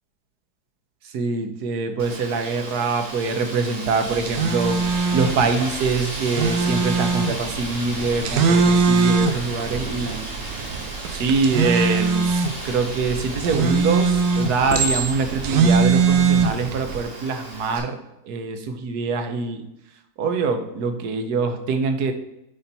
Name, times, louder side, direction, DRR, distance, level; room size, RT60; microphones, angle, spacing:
voice 1, 1.0-4.8 5.1-10.2 10.5-10.6 11.1-18.0 18.2-19.6 20.2-22.1, right 4 dB, 65° right, 7 dB, 1.3 m, -24 dB
Wind, 2.0-17.8, right 1 dB, 35° right, 1.9 m, -34 dB
sound 1, 4.1-17.0, right 4 dB, 85° right, 1.4 m, -22 dB
Chink clink, 14.7-15.5 16.2-16.5, right 3 dB, 10° right, 1.1 m, -26 dB
8.8 x 4.3 x 4.1 m, 0.86 s
omnidirectional pair, 1.9 m